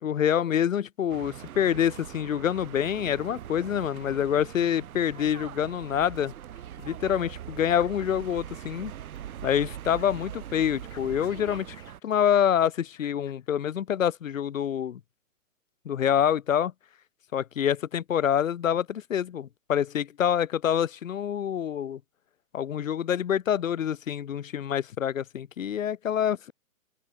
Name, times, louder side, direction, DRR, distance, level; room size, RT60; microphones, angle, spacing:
voice 1, 0.0-6.3 6.8-8.9 9.4-11.7 12.0-15.0 15.8-16.7 17.3-22.0 22.5-26.5, left 9 dB, 65° left, 0.9 m, -26 dB
sound 1, 1.1-12.0, right 11 dB, 90° right, 0.7 m, -42 dB
sound 2, 5.9-9.2 9.5-12.4 12.7-13.7, left 11 dB, 10° left, 3.8 m, -55 dB
open air
hypercardioid pair, 175°, 42 cm